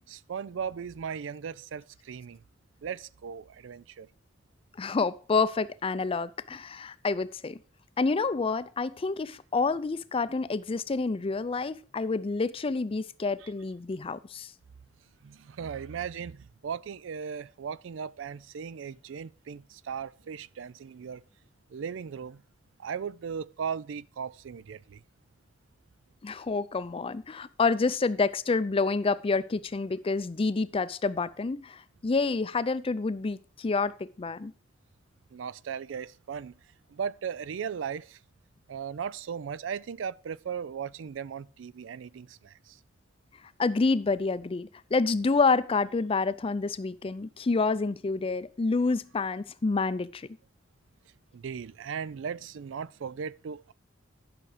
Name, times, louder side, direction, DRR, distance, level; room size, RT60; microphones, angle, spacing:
voice 1, 0.1-2.4 2.8-4.1 13.4-13.5 15.2-21.2 21.7-22.4 22.8-25.0 35.3-36.6 36.9-38.2 38.7-42.8 51.3-53.7, right 7 dB, 85° right, 0.4 m, -37 dB
voice 2, 4.8-7.6 8.0-14.5 26.2-34.5 43.6-50.3, left 4 dB, 30° left, 0.4 m, -28 dB
11.0 x 5.9 x 4.9 m
head